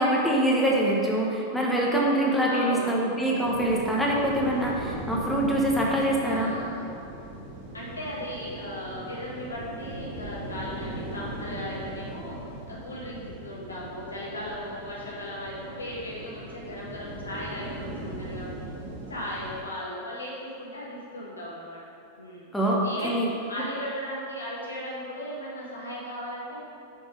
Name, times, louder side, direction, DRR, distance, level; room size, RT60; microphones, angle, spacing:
voice 1, 0.0-6.5 22.5-23.3, right 1 dB, 5° left, -3 dB, 1.3 m, -24 dB
voice 2, 1.8-3.2 6.3-6.9 7.7-18.7 19.1-21.8 22.2-22.5 22.8-23.2 23.5-26.6, equal, 75° left, -5 dB, 1.7 m, -37 dB
sound 1, 3.4-19.6, right 1 dB, 55° right, 1.6 m, -39 dB
5.7 x 5.4 x 5.0 m, 2.6 s
figure-of-eight pair, 90°, 0 cm